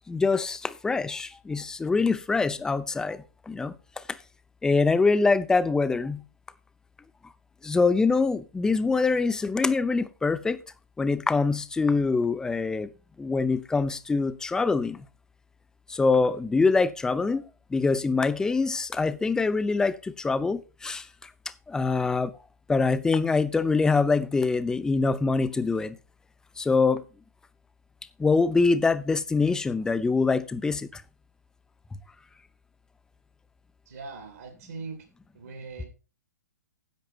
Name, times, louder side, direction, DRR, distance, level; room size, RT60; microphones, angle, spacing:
voice 1, 0.1-4.2 4.6-6.2 7.6-10.6 11.0-12.9 13.2-15.1 15.9-17.4 17.7-21.3 21.7-22.3 22.7-26.0 26.6-27.0 28.2-31.0, left 4 dB, 5° left, 0.6 m, -24 dB
voice 2, 33.9-35.0 35.3-35.9, right 4 dB, 70° right, 2.9 m, -40 dB
10.5 x 7.5 x 4.4 m
hypercardioid pair, 120°, 9 cm